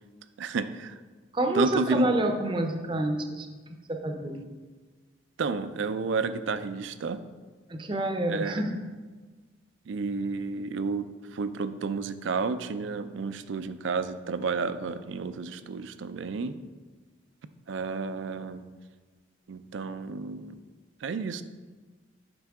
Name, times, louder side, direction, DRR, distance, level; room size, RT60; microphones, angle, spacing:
voice 1, 0.4-0.9 1.5-2.1 5.4-7.2 8.3-8.6 9.9-16.6 17.7-18.6 19.5-20.6 21.0-21.4, right 4 dB, 75° right, 12 dB, 0.4 m, -31 dB
voice 2, 1.3-3.5 3.9-4.5 7.7-8.7, right 1 dB, 25° right, 5 dB, 0.5 m, -28 dB
7.9 x 5.5 x 3.5 m, 1.4 s
head